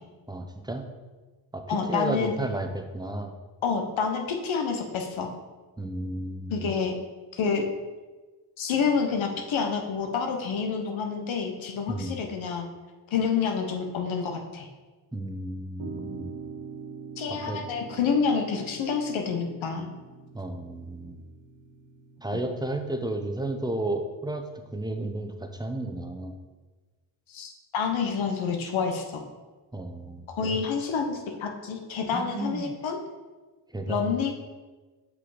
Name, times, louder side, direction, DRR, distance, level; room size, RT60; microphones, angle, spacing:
voice 1, 0.3-0.9 1.5-3.3 5.8-6.7 11.9-12.2 15.1-16.4 17.3-17.6 20.3-21.2 22.2-26.3 29.7-30.6 32.1-32.7 33.7-34.1, right 1 dB, 10° right, 4 dB, 0.8 m, -33 dB
voice 2, 1.7-2.3 3.6-5.3 6.5-7.0 7.3-7.6 8.6-12.7 13.1-14.7 17.2-19.9 22.3-22.4 27.3-29.2 30.4-33.0 33.9-34.3, left 5 dB, 85° left, 3 dB, 1.0 m, -28 dB
sound 1, 15.8-22.2, right 5 dB, 70° right, 1.1 m, -43 dB
5.6 x 5.2 x 4.8 m, 1.3 s
cardioid pair, 70°, 46 cm